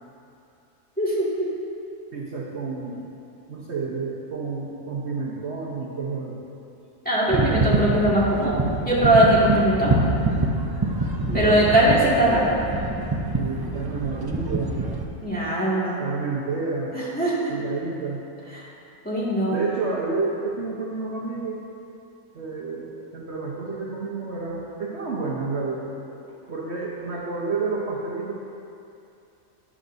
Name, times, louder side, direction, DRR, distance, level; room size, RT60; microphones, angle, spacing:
voice 1, 1.0-1.5 7.1-10.0 11.3-12.6 15.2-16.0 16.9-17.6 19.0-19.6, right 1 dB, 5° left, -8 dB, 2.0 m, -21 dB
voice 2, 2.1-3.1 3.5-6.4 11.3-12.0 13.4-14.8 16.0-16.9 17.5-18.2 19.5-21.6 22.3-28.3, right 4 dB, 55° right, -4 dB, 1.2 m, -30 dB
sound 1, 7.3-15.0, right 2 dB, 35° right, 0.3 m, -25 dB
12.5 x 9.8 x 2.7 m, 2.6 s
omnidirectional pair, 1.4 m